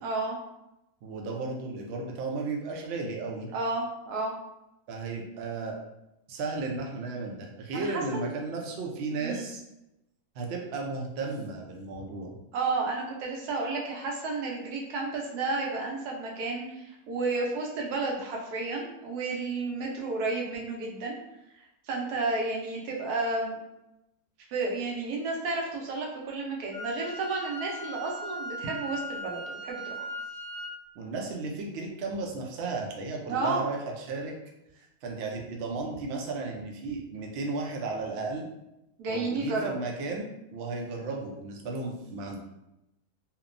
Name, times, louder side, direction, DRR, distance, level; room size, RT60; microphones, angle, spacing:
voice 1, 0.0-0.4 3.5-4.3 7.7-8.3 9.2-9.4 12.5-21.2 21.9-23.6 24.5-30.1 33.3-33.6 39.0-39.7, right 3 dB, 90° right, -1 dB, 1.2 m, -31 dB
voice 2, 1.0-3.5 4.9-5.8 6.3-9.6 10.4-12.4 31.0-34.3 34.7-38.5 39.1-42.4, right 3 dB, 70° right, 1 dB, 0.6 m, -34 dB
Wind instrument woodwind instrument, 26.7-30.7, right 1 dB, 40° left, 1.0 m, -39 dB
2.9 x 2.1 x 2.5 m, 0.90 s
omnidirectional pair, 1.6 m